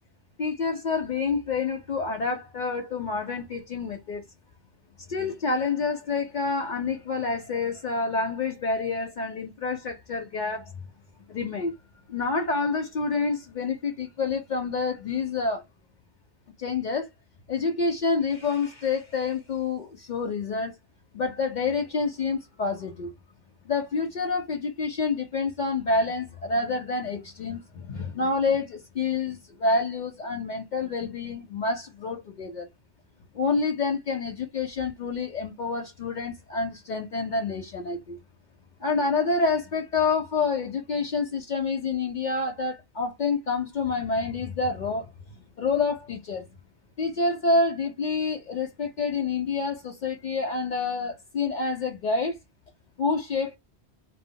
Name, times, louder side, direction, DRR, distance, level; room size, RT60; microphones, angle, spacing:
voice 1, 0.4-4.2 5.1-10.7 11.3-11.7 12.1-15.6 16.6-17.1 17.5-20.7 21.1-23.1 23.7-32.7 33.3-38.2 38.8-45.1 45.6-46.4 47.0-52.4 53.0-53.6, left 4 dB, 55° left, 0.6 m, -28 dB
2.0 x 2.0 x 3.7 m
omnidirectional pair, 1.1 m